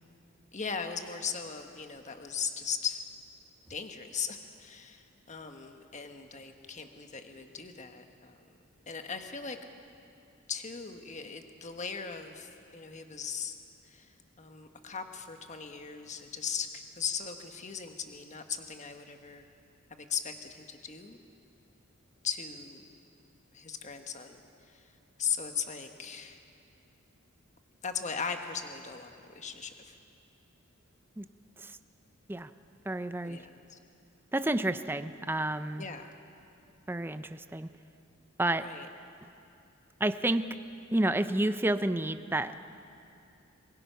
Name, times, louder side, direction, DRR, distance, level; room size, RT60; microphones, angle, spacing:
voice 1, 0.5-3.1 3.7-8.5 8.9-9.6 10.5-13.5 13.8-14.1 14.4-19.5 19.9-21.2 22.2-22.8 23.5-24.9 25.2-26.4 27.8-29.9 33.2-33.8 35.8-36.1 38.5-38.9, left 6 dB, 35° left, 6 dB, 1.3 m, -38 dB
voice 2, 32.9-33.4 34.3-35.9 36.9-37.7 38.4-38.7 40.0-40.5 40.9-42.5, right 1 dB, 10° right, 11 dB, 0.5 m, -30 dB
25.5 x 21.0 x 5.7 m, 2.6 s
head